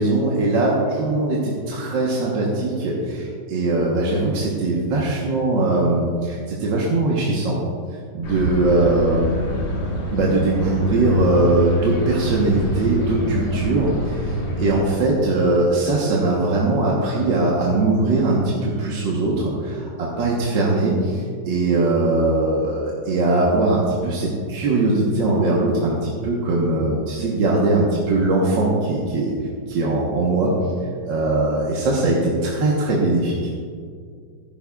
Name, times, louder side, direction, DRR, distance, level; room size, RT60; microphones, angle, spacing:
voice 1, 0.0-7.6 8.1-9.4 10.1-29.3 29.7-30.5 31.1-33.3, right 2 dB, 65° right, -4 dB, 1.9 m, -20 dB
sound 1, 8.2-14.8, left 1 dB, 70° left, 2.3 m, -26 dB
14.0 x 11.5 x 2.4 m, 2.1 s
omnidirectional pair, 2.2 m